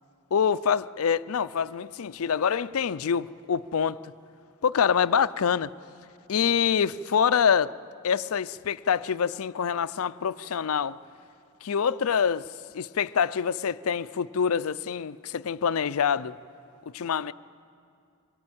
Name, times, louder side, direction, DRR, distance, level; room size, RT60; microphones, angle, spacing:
voice 1, 0.3-4.1 4.6-5.7 6.3-7.7 8.0-11.0 11.6-12.5 12.7-16.4 16.9-17.3, left 7 dB, 70° left, 0.5 m, -25 dB
24.0 x 20.5 x 8.8 m
head